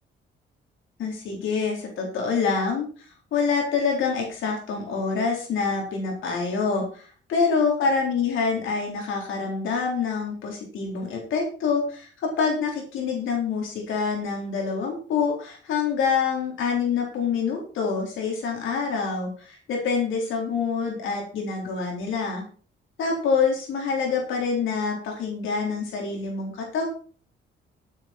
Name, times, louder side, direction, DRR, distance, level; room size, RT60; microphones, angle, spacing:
voice 1, 1.0-22.4 23.0-26.8, left 5 dB, 90° left, 0 dB, 4.3 m, -26 dB
12.0 x 8.7 x 4.6 m, 0.41 s
cardioid pair, 120°, 20 cm